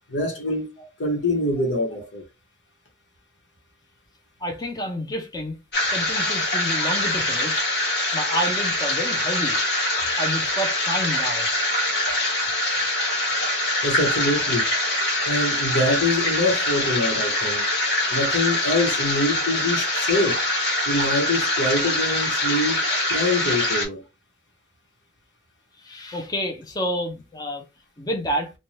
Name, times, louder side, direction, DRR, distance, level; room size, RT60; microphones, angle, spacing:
voice 1, 0.1-0.7 1.0-2.3 13.8-14.7 15.2-17.7 18.1-20.4 20.9-24.0, left 2 dB, 85° left, 1.0 m, -24 dB
voice 2, 4.4-5.6 5.9-7.7 8.1-9.6 10.2-11.5 25.8-27.6 28.0-28.5, equal, 20° left, 0.5 m, -29 dB
sound 1, 5.7-23.9, left 1 dB, 60° left, 1.3 m, -24 dB
2.6 x 2.2 x 3.1 m
head